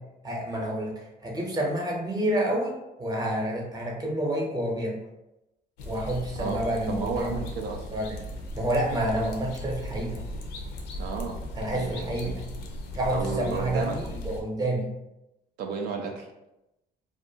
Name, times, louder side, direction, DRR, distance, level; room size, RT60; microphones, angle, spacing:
voice 1, 0.2-4.9 5.8-7.4 7.9-8.2 8.5-10.2 11.6-12.4 12.9-14.9, right 1 dB, 20° right, -2 dB, 0.7 m, -29 dB
sound 1, 5.8-14.4, left 1 dB, 90° left, 0.5 m, -37 dB
voice 2, 6.9-7.9 11.0-11.4 11.7-12.3 13.1-14.0 15.6-16.3, right 5 dB, 75° right, 2 dB, 0.4 m, -33 dB
2.4 x 2.2 x 2.7 m, 0.91 s
cardioid pair, 110°, 17 cm